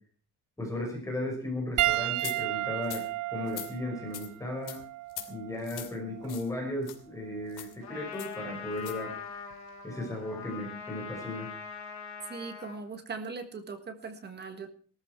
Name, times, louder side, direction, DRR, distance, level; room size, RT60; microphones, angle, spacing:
voice 1, 0.6-3.0 3.3-4.8 5.3-9.1 9.8-11.5, left 1 dB, 10° left, 0 dB, 5.5 m, -35 dB
Piano, 1.8-6.4 7.4-7.6 9.5-9.6, right 15 dB, 50° right, 1.0 m, -33 dB
sound 1, 2.2-2.4 2.8-3.0 3.5-3.7 4.1-4.3 4.7-4.8 5.1-5.3 5.6-5.9 6.3-6.5 6.8-7.0 7.5-7.7 8.2-8.3 8.8-9.0, left 12 dB, 80° left, 2.8 m, -41 dB
Trumpet, 7.8-12.8, left 6 dB, 45° left, 3.5 m, -42 dB
voice 2, 12.2-14.7, right 4 dB, 25° right, 7 dB, 1.6 m, -40 dB
18.5 x 13.5 x 4.6 m, 0.41 s
cardioid pair, 170°, 38 cm